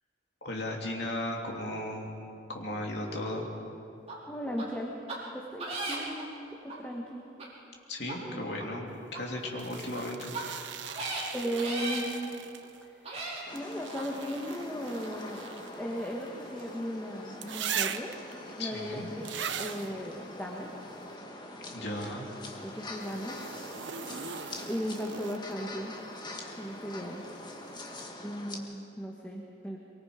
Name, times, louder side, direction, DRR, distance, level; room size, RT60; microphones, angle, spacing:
voice 1, 0.4-2.1 2.5-3.5 7.9-10.3 18.6-19.1 21.7-22.3, left 1 dB, 60° left, -1 dB, 3.1 m, -36 dB
sound 1, 4.1-4.2 4.6-4.7 5.1-5.2 5.6-6.2 6.7-6.8 7.4-7.5 8.0-8.1 8.6-8.7 9.1-9.2 9.9-10.0 10.3-10.4 10.9-11.2 11.6-12.0 12.6-12.7 13.0-13.4 13.9-14.0, right 2 dB, 35° right, 4.5 m, -36 dB
voice 2, 4.3-4.9 5.3-7.2 8.1-8.4 11.3-12.3 12.8-13.0 13.5-15.4 15.8-18.1 18.6-20.7 21.8-22.3 22.6-23.4 24.6-25.9 26.6-27.3 28.2-29.8, equal, 10° left, -1 dB, 1.5 m, -37 dB
sound 2, 9.6-12.8 13.5-16.7 17.4-18.3 19.2-19.9 22.9-25.6 27.5-27.6, right 7 dB, 70° right, 0.9 m, -40 dB
sound 3, 13.5-28.6, left 1 dB, 25° left, 1.7 m, -44 dB
23.5 x 23.5 x 5.2 m, 2.6 s
head